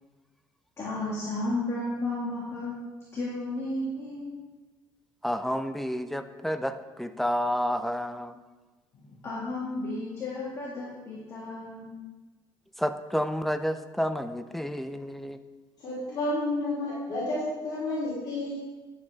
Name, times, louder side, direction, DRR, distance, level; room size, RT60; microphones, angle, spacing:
voice 1, 0.8-2.7 3.1-4.3 9.2-11.9, left 2 dB, 30° left, -8 dB, 2.1 m, -33 dB
voice 2, 5.2-8.4 12.8-15.4, equal, ahead, 10 dB, 0.4 m, -30 dB
voice 3, 15.8-18.6, left 2 dB, 45° left, -9 dB, 3.3 m, -30 dB
10.5 x 7.4 x 3.6 m, 1.2 s
cardioid pair, 150°, 9 cm